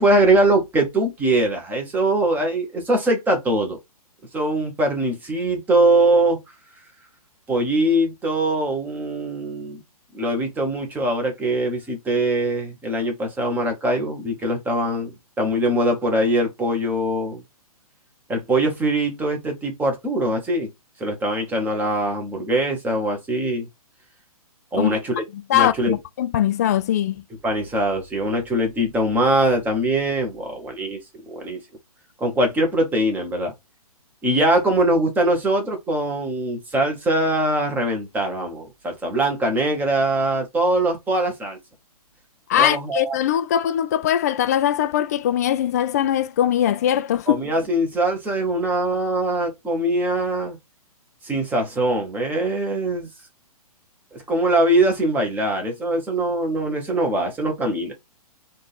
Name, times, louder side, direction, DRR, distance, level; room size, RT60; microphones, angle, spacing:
voice 1, 0.0-3.8 4.3-6.4 7.5-9.8 10.1-17.4 18.3-20.7 21.0-23.7 24.7-25.2 25.5-25.9 27.4-31.0 31.3-31.6 32.2-33.5 34.2-41.6 42.5-43.2 47.3-50.6 51.2-53.1 54.1-57.9, right 1 dB, 10° right, 1.0 m, -22 dB
voice 2, 25.5-27.1 42.5-47.4, left 11 dB, 25° left, 0.3 m, -21 dB
3.8 x 2.5 x 3.9 m
figure-of-eight pair, 125°, 20 cm